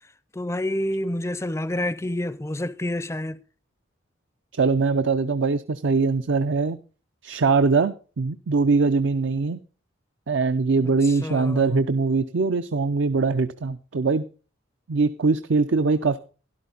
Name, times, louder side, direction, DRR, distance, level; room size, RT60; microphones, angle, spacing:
voice 1, 0.3-3.4 11.0-11.8, left 1 dB, 15° left, 0.5 m, -28 dB
voice 2, 4.5-6.8 7.2-9.6 10.3-14.3 14.9-16.2, right 4 dB, 70° right, 0.5 m, -22 dB
12.5 x 11.5 x 3.9 m
head